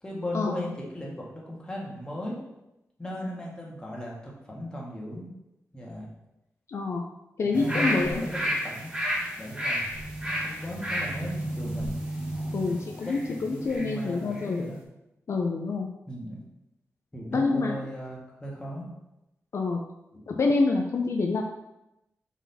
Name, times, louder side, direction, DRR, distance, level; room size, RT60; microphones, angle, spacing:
voice 1, 0.0-2.4 3.0-5.3 5.7-6.1 7.4-8.9 9.4-9.8 10.4-11.9 12.6-14.8 16.1-16.4 17.1-18.8, equal, 15° left, -4 dB, 1.7 m, -37 dB
voice 2, 6.7-7.0 7.4-8.1 12.5-14.7 15.3-15.9 17.3-17.9 19.5-19.8 20.3-21.4, left 3 dB, 60° left, 2 dB, 0.6 m, -27 dB
sound 1, 7.5-14.0 14.3-14.5, equal, 20° right, 1.7 m, -31 dB
6.0 x 4.1 x 4.1 m, 0.90 s
wide cardioid pair, 125°, 5 cm